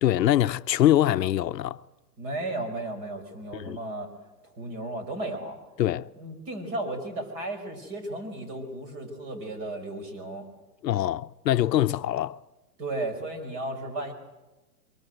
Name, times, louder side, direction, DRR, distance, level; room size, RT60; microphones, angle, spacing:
voice 1, 0.0-1.8 3.6-3.8 5.8-6.1 10.8-12.4, left 12 dB, 80° left, 0.8 m, -23 dB
voice 2, 2.2-4.1 4.4-5.6 6.1-10.4 12.8-14.1, right 2 dB, 30° right, 5.0 m, -34 dB
23.5 x 21.5 x 7.9 m
hypercardioid pair, 155°, 49 cm